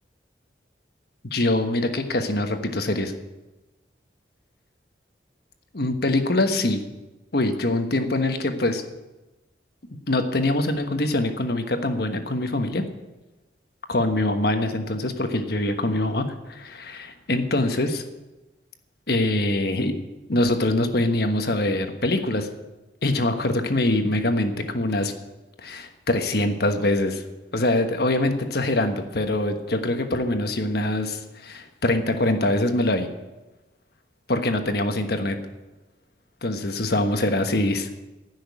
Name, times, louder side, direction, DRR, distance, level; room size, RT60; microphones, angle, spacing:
voice 1, 1.3-3.1 5.7-6.8 7.3-8.8 10.1-12.8 13.9-18.0 19.1-20.0 20.3-22.5 23.0-25.1 25.6-27.2 27.5-33.1 34.3-35.3 36.4-37.9, left 1 dB, 60° left, 6 dB, 1.4 m, -24 dB
15.5 x 6.4 x 9.5 m, 1.1 s
head